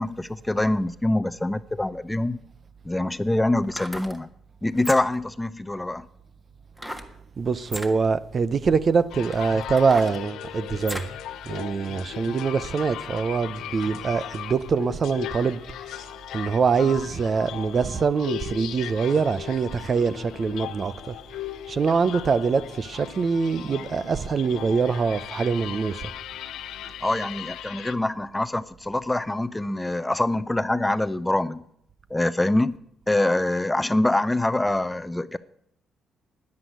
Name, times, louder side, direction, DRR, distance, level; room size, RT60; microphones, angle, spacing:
voice 1, 0.0-2.4 2.8-4.3 4.6-6.1 27.0-31.6 32.1-32.7 33.1-35.4, left 1 dB, 10° left, 0.6 m, -25 dB
sound 1, 2.4-2.5 3.6-4.2 4.7-5.3 6.8-7.1 7.6-7.9 8.7-8.8 9.3-11.2 11.6-11.7, equal, 5° right, 1.5 m, -36 dB
voice 2, 7.4-11.1 11.4-21.1 21.7-26.1, right 5 dB, 45° right, 0.7 m, -24 dB
sound 2, 9.1-28.0, left 11 dB, 85° left, 0.8 m, -38 dB
10.5 x 9.8 x 9.2 m
cardioid pair, 90°, 0 cm